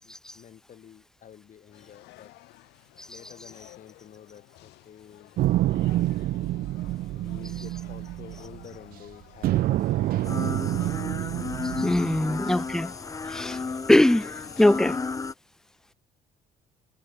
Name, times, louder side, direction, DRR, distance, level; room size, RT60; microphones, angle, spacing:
voice 1, 0.0-2.3 2.7-5.3 5.6-6.8 7.1-11.6 12.1-12.3 14.5-14.6, left 9 dB, 50° left, 6.4 m, -50 dB
sound 1, 1.7-15.2, left 19 dB, 90° left, 3.7 m, -52 dB
sound 2, 5.4-8.9 9.4-12.8, right 15 dB, 60° right, 0.4 m, -27 dB
sound 3, 10.2-15.3, left 4 dB, 20° left, 1.0 m, -33 dB
voice 2, 11.8-12.9 13.3-13.6 13.9-15.0, left 1 dB, 5° left, 0.5 m, -21 dB
cardioid pair, 110°, 17 cm